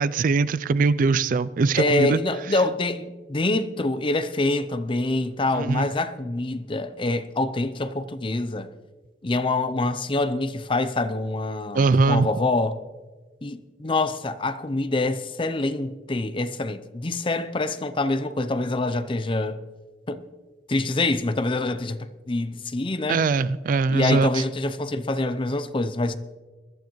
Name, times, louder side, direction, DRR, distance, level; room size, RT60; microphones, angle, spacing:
voice 1, 0.0-2.2 5.5-5.9 11.7-12.3 23.1-24.4, right 4 dB, 45° right, 0.3 m, -21 dB
voice 2, 1.8-8.7 9.2-12.8 13.4-19.6 20.1-20.2 20.7-23.2 23.9-26.2, left 2 dB, 30° left, 0.6 m, -25 dB
21.5 x 11.5 x 3.1 m
head